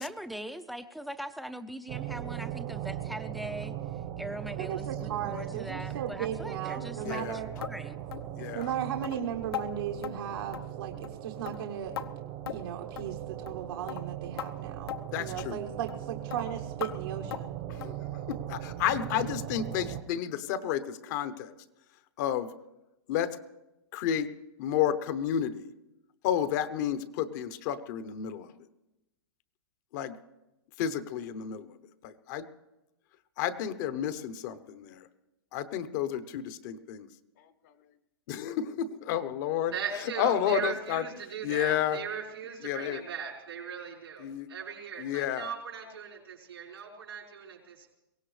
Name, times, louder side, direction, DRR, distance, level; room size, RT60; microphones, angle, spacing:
voice 1, 0.0-3.7 4.2-8.0, equal, ahead, 10 dB, 0.5 m, -41 dB
sound 1, 1.9-20.0, right 12 dB, 45° right, 1.1 m, -39 dB
voice 2, 4.6-7.5 8.5-12.1 12.5-17.6, right 9 dB, 65° right, 2 dB, 1.1 m, -36 dB
voice 3, 7.0-7.4 8.4-8.7 15.1-15.6 17.7-17.9 18.3-21.5 22.2-22.5 23.1-23.3 23.9-24.3 24.6-25.7 26.2-28.5 29.9-30.1 30.8-31.7 32.0-32.5 33.4-35.0 35.5-37.1 38.3-39.7 40.2-41.0 41.4-42.0 42.6-43.0 44.2-44.5 45.0-45.5, left 9 dB, 45° left, 13 dB, 0.9 m, -31 dB
sound 2, 7.6-7.8 8.1-8.3 8.6-8.7 9.0-9.2 9.5-9.7 10.0-10.2 10.5-10.8 11.0-11.2 11.5-12.1 12.5-12.7 13.0-13.1 13.5-13.6 13.9-14.0 14.4-14.5 14.9-15.0 15.4-15.5 15.9-16.0 16.3-16.4 16.8-16.9 17.3-17.5 17.8-18.0 18.3-18.5 18.8-18.9 19.3-19.4 19.8-19.9, left 11 dB, 75° left, 0.9 m, -38 dB
voice 4, 39.7-47.9, right 7 dB, 90° right, -5 dB, 5.5 m, -39 dB
23.0 x 17.0 x 3.3 m, 0.99 s
hypercardioid pair, 135°, 13 cm